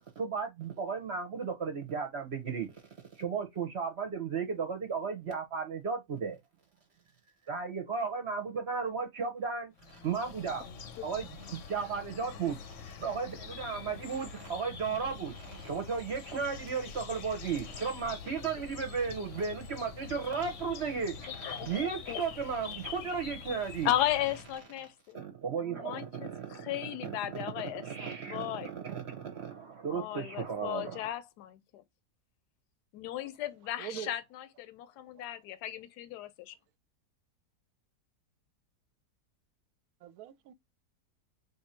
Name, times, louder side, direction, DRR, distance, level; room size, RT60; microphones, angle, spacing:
voice 1, 0.2-2.7 3.1-6.4 7.5-10.6 11.0-23.9 25.1-31.1, right 6 dB, 50° right, 0.8 m, -35 dB
sound 1, 9.8-24.6, left 6 dB, 60° left, 0.9 m, -45 dB
voice 2, 21.5-22.3 23.8-25.2 25.6-28.7 29.9-31.8 32.9-34.2 34.6-36.5, left 12 dB, 75° left, 1.1 m, -35 dB
voice 3, 33.8-34.1 40.0-40.5, right 11 dB, 75° right, 1.0 m, -42 dB
3.6 x 2.6 x 4.2 m
omnidirectional pair, 1.8 m